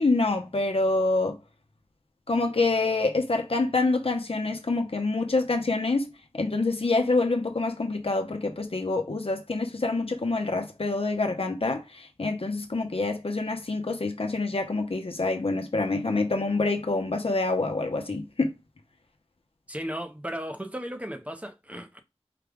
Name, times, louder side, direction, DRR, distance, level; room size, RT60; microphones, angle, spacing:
voice 1, 0.0-1.4 2.3-6.1 6.3-18.5, left 3 dB, 65° left, 0.8 m, -26 dB
voice 2, 19.7-22.0, equal, 15° right, 0.7 m, -35 dB
5.0 x 2.3 x 3.5 m
wide cardioid pair, 50°, 11 cm